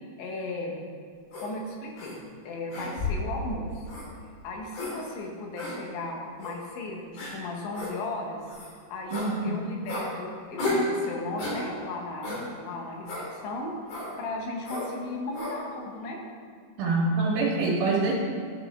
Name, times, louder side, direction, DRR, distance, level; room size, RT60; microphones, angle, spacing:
voice 1, 0.2-0.8 1.4-3.8 4.4-8.4 8.9-13.7 14.2-16.2, left 2 dB, 75° left, 0 dB, 3.3 m, -36 dB
sound 1, 1.3-1.5 2.0-2.1 2.7-3.3 3.9-4.1 4.7-4.9 5.6-5.7 6.4-6.5 7.2-7.3 7.7-7.9 8.5-8.7 9.1-9.3 9.9-10.1 10.6-10.9 11.4-11.6 12.2-12.4 13.1-13.3 13.9-14.1 14.6-14.9 15.3-15.5, left 2 dB, 55° left, 3.8 m, -32 dB
voice 2, 9.1-9.6 16.8-18.1, right 3 dB, 80° right, -5 dB, 3.7 m, -25 dB
13.5 x 6.0 x 3.5 m, 2.1 s
omnidirectional pair, 5.5 m